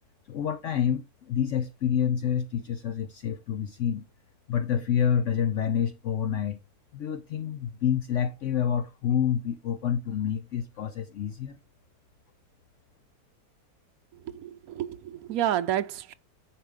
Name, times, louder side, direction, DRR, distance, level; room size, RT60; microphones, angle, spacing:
voice 1, 0.3-4.1 4.5-6.6 6.9-11.6, left 8 dB, 65° left, 0.9 m, -28 dB
voice 2, 14.3-16.1, right 11 dB, 75° right, 1.1 m, -30 dB
10.0 x 4.5 x 3.5 m
omnidirectional pair, 1.6 m